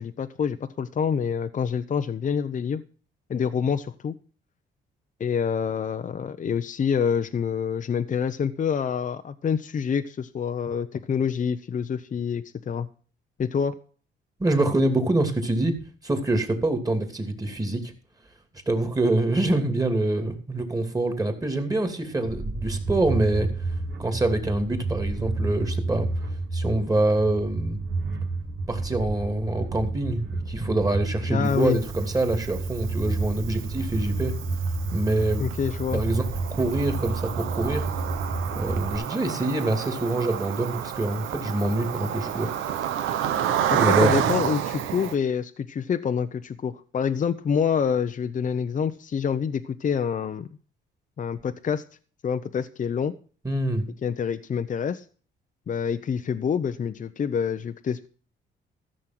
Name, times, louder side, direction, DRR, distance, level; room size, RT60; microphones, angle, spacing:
voice 1, 0.0-2.8 3.3-4.1 5.2-12.9 13.4-13.8 31.3-31.8 35.4-36.0 43.7-50.5 51.2-51.8 52.2-53.1 54.0-55.0 55.7-58.1, left 7 dB, 40° left, 8 dB, 0.7 m, -27 dB
voice 2, 14.4-15.8 16.0-17.9 18.7-23.5 24.0-26.1 26.5-27.8 28.7-34.3 34.9-35.5 35.9-36.2 36.5-37.8 38.5-42.5 43.7-44.3 53.4-53.9, right 2 dB, 20° right, 6 dB, 2.7 m, -25 dB
sound 1, 22.2-38.9, right 3 dB, 60° right, 2.7 m, -30 dB
Cricket, 31.5-45.1, right 9 dB, 90° right, 1.1 m, -30 dB
14.0 x 6.4 x 6.0 m, 0.40 s
cardioid pair, 90°, 20 cm